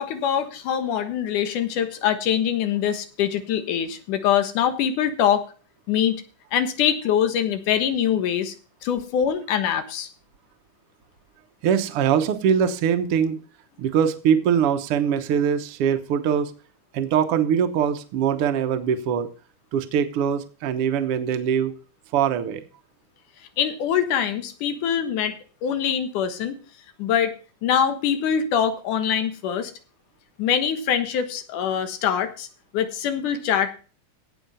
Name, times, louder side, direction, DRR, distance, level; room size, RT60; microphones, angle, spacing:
voice 1, 0.0-5.4 5.9-6.2 6.5-8.5 8.8-10.1 23.6-25.4 25.6-26.6 27.0-27.3 27.6-29.7 30.4-32.5 32.7-33.7, left 9 dB, 75° left, 9 dB, 2.8 m, -23 dB
voice 2, 11.6-13.4 13.8-16.5 16.9-19.3 19.7-21.7 22.1-22.7, right 8 dB, 60° right, 7 dB, 1.7 m, -22 dB
17.0 x 5.7 x 5.5 m, 0.37 s
omnidirectional pair, 3.6 m